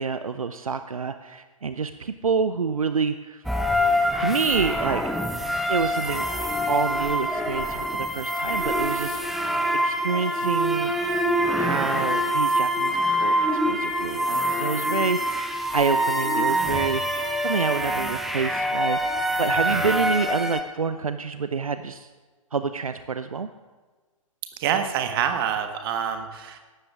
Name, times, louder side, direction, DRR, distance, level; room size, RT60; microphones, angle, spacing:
voice 1, 0.0-3.4 4.2-5.0 5.7-6.2 6.7-9.4 9.7-10.9 11.6-13.3 13.6-22.1 22.5-23.5, right 5 dB, 80° right, 11 dB, 0.6 m, -28 dB
sound 1, 3.4-20.6, equal, ahead, 0.8 m, -25 dB
voice 2, 24.6-26.6, right 8 dB, 40° right, 7 dB, 1.5 m, -26 dB
16.5 x 12.5 x 3.6 m, 1.3 s
figure-of-eight pair, 115°, 18 cm